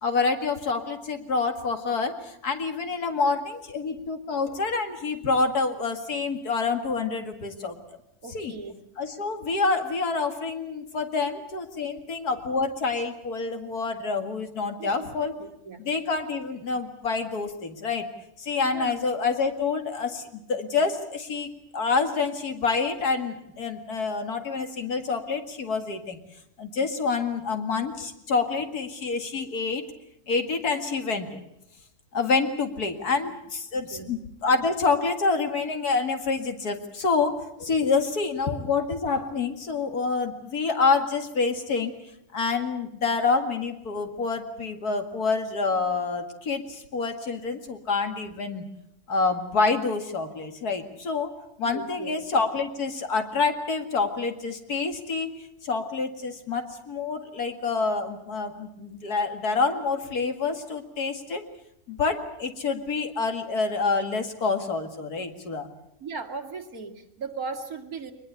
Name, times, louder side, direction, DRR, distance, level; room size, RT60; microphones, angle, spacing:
voice 1, 0.0-7.8 8.3-8.5 9.0-15.3 15.8-18.1 18.4-26.2 26.6-29.9 30.3-31.4 32.1-41.9 42.3-48.7 49.1-51.3 51.6-55.3 55.6-61.5 61.9-65.7, left 4 dB, 85° left, 6 dB, 2.6 m, -27 dB
voice 2, 8.2-8.8 14.8-15.8 18.7-19.0 33.1-33.2 33.9-34.2 51.6-52.2 66.0-68.1, right 4 dB, 70° right, 4 dB, 2.7 m, -37 dB
23.0 x 21.0 x 8.1 m, 0.80 s
omnidirectional pair, 1.6 m